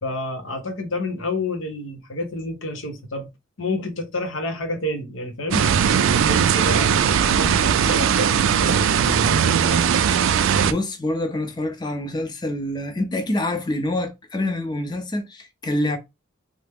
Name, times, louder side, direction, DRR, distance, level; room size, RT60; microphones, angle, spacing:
voice 1, 0.0-3.3 3.6-9.8, left 1 dB, 75° left, 0.8 m, -29 dB
sound 1, 5.5-10.7, right 7 dB, 80° right, 0.3 m, -19 dB
voice 2, 10.6-16.0, left 1 dB, 20° left, 0.5 m, -26 dB
3.2 x 2.0 x 3.4 m
head